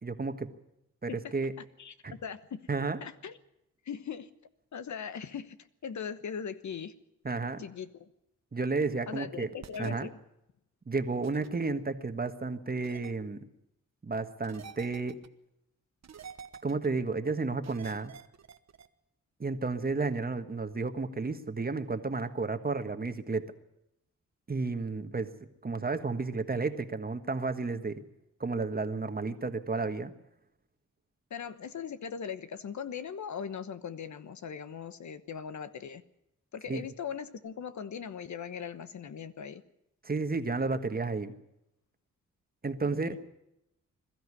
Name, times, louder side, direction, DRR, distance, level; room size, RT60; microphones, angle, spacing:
voice 1, 0.0-0.5 1.0-1.5 2.0-2.1 2.7-3.0 7.2-7.6 8.5-9.5 9.8-10.1 10.9-13.4 14.0-15.2 16.6-18.1 19.4-23.5 24.5-25.3 25.6-28.0 28.4-30.1 36.7-36.8 40.0-41.3 42.6-43.1, right 3 dB, 30° right, 8 dB, 1.5 m, -32 dB
voice 2, 1.8-2.7 3.0-3.4 3.9-4.3 4.7-5.6 5.8-6.9 7.6-8.1 9.1-10.1 31.3-36.0 36.5-39.6 42.9-43.2, left 7 dB, 70° left, 12 dB, 1.1 m, -40 dB
sound 1, 9.6-9.9 11.2-11.5 12.8-13.1 14.4-15.3 16.0-16.9 17.6-18.9, right 7 dB, 60° right, 1.1 m, -48 dB
21.5 x 13.0 x 9.8 m, 0.84 s
cardioid pair, 85°, 30 cm